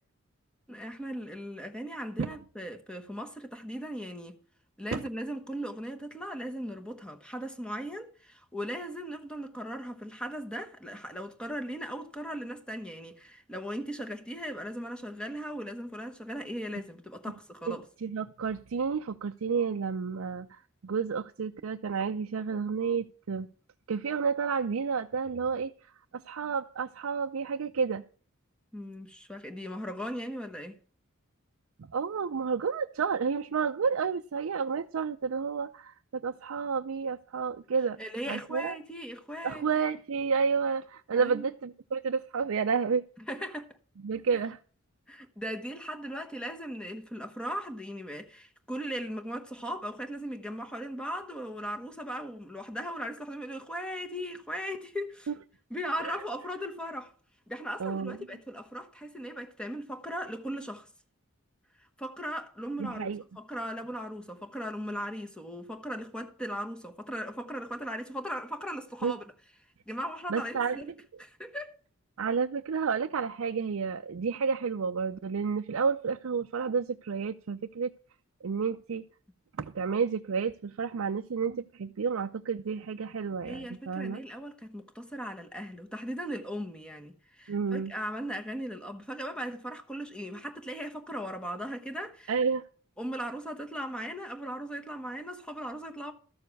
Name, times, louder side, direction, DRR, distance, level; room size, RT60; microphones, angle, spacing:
voice 1, 0.7-4.4 4.8-17.8 28.7-30.8 38.0-39.7 41.1-41.5 43.2-43.7 45.1-55.3 55.7-57.1 57.5-60.9 62.0-63.1 63.4-69.2 69.9-70.9 71.2-71.8 83.4-92.3 93.0-96.1, equal, 5° left, 1.0 m, -38 dB
voice 2, 18.0-23.5 23.9-25.7 26.1-28.0 31.9-38.0 38.3-38.8 39.4-43.0 44.0-44.6 55.3-55.4 56.0-56.2 57.8-58.2 62.8-63.2 69.0-69.1 70.3-70.8 72.2-77.9 78.4-79.0 79.6-84.2 87.5-87.9 92.3-92.6, right 5 dB, 70° right, 0.5 m, -30 dB
13.5 x 6.9 x 4.7 m
head